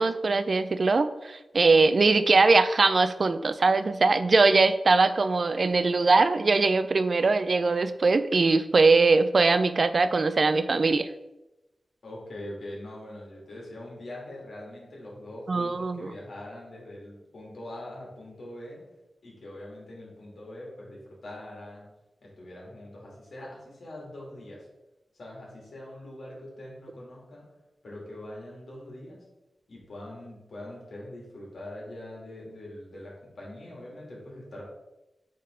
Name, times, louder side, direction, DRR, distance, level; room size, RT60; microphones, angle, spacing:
voice 1, 0.0-11.1 15.5-16.1, right 3 dB, 50° right, 12 dB, 0.3 m, -21 dB
voice 2, 12.0-18.8 19.2-21.9 22.2-24.7 25.1-27.5 27.8-29.2 29.7-34.6, left 1 dB, 65° left, -4 dB, 2.4 m, -43 dB
8.4 x 3.6 x 3.8 m, 0.98 s
wide cardioid pair, 125°, 0 cm